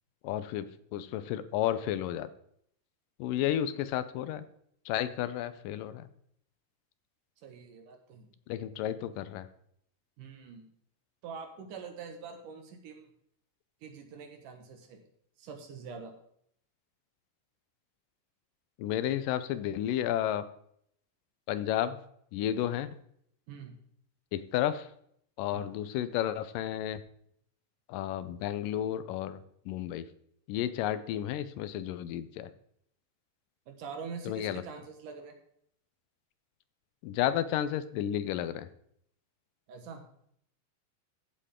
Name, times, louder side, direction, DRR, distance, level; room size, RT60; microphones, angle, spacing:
voice 1, 0.2-0.7 0.9-2.3 3.2-4.4 4.9-6.1 8.5-9.5 18.8-20.4 21.5-22.0 22.3-22.9 24.3-24.9 25.4-27.0 27.9-29.4 29.7-30.0 30.5-32.5 34.3-34.6 37.0-38.7, left 11 dB, 85° left, 14 dB, 2.3 m, -32 dB
voice 2, 7.4-8.3 10.2-10.7 11.2-13.1 13.8-15.0 15.4-16.1 23.5-23.7 25.5-25.8 33.7-35.4 39.7-40.0, right 5 dB, 75° right, 4 dB, 3.0 m, -45 dB
15.0 x 7.8 x 3.7 m, 0.68 s
omnidirectional pair, 3.8 m